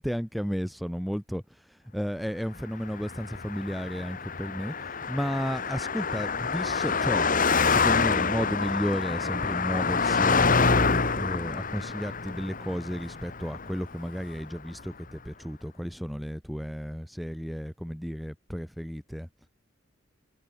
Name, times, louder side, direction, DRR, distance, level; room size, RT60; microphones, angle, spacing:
voice 1, 0.0-1.4 1.7-7.3 7.6-19.3, equal, ahead, 1.6 m, -33 dB
Car passing by, 2.9-14.4, left 5 dB, 45° left, 1.7 m, -27 dB
head